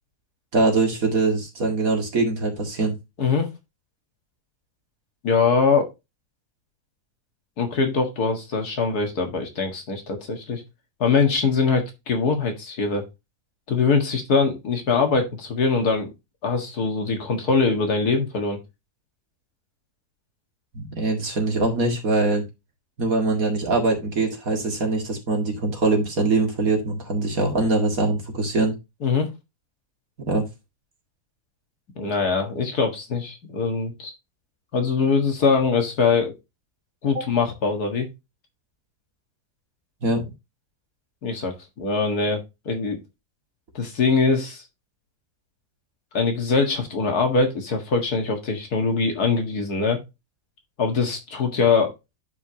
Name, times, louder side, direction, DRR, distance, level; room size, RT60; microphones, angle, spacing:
voice 1, 0.5-2.9 20.7-22.4 23.0-28.7 30.3-30.4 37.1-37.2 40.0-40.2, right 3 dB, 55° right, 2 dB, 2.5 m, -23 dB
voice 2, 3.2-3.5 5.2-5.9 7.6-10.6 11.0-13.0 13.7-16.1 16.4-18.6 29.0-29.3 32.0-34.1 34.7-36.3 37.0-38.1 41.2-43.0 43.7-44.6 46.1-50.0 50.8-51.9, left 4 dB, 65° left, 4 dB, 2.2 m, -22 dB
11.0 x 4.9 x 2.8 m, 0.23 s
omnidirectional pair, 1.8 m